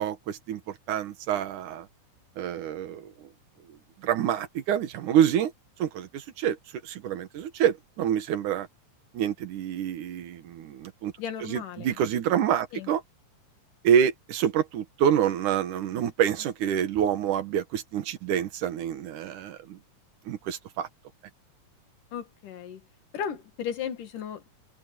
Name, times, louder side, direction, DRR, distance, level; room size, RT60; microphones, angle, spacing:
voice 1, 0.0-1.9 2.4-3.3 3.7-5.5 5.8-6.6 6.8-8.7 9.1-11.1 11.4-13.0 13.8-19.8 20.3-20.9, right 9 dB, 75° right, 2.8 m, -27 dB
voice 2, 11.2-12.0 12.7-12.9 22.1-22.8 23.1-24.6, left 8 dB, 85° left, 3.6 m, -35 dB
omnidirectional pair, 3.6 m